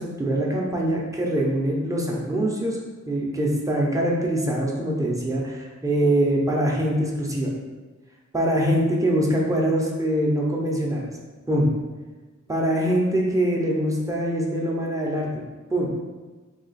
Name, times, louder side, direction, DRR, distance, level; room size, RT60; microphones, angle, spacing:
voice 1, 0.0-2.8 3.1-7.5 8.3-11.1 11.5-11.7 12.5-15.3 15.7-15.9, right 1 dB, 10° right, -3 dB, 0.6 m, -23 dB
3.1 x 2.3 x 4.0 m, 1.3 s
wide cardioid pair, 50°, 30 cm